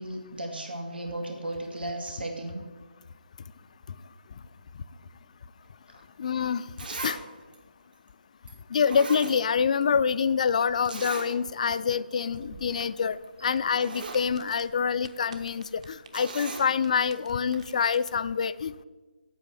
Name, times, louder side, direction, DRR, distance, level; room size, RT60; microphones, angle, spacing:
voice 1, 0.0-2.6 5.9-6.0 13.4-13.5, right 1 dB, 90° right, 2 dB, 2.1 m, -35 dB
voice 2, 6.2-6.6 7.0-7.2 8.7-18.8, left 6 dB, 45° left, 15 dB, 0.3 m, -26 dB
Zipper (clothing), 6.2-6.3 6.8-7.2 7.5-7.6 8.5-8.6 8.8-9.8 10.1-10.2 10.9-11.3 11.7-11.8 12.2-12.4 13.2-13.3 13.6-14.2 16.1-16.7 17.5-17.6, right 3 dB, 65° right, 1.9 m, -38 dB
sound 1, 12.3-18.1, right 4 dB, 40° right, 0.9 m, -52 dB
8.3 x 5.1 x 7.6 m, 1.3 s
figure-of-eight pair, 155°, 5 cm